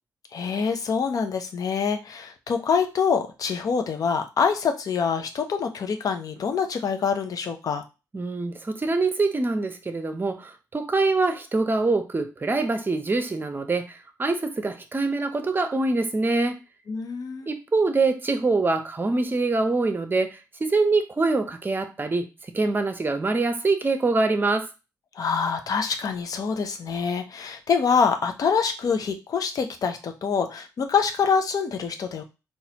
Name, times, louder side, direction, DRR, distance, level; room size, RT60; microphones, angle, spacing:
voice 1, 0.3-7.8 16.9-17.5 25.1-32.2, left 6 dB, 60° left, 7 dB, 0.7 m, -25 dB
voice 2, 8.1-16.6 17.5-22.3 22.5-24.7, right 3 dB, 30° right, 8 dB, 0.7 m, -24 dB
4.1 x 2.5 x 2.8 m, 0.28 s
supercardioid pair, 55°, 7 cm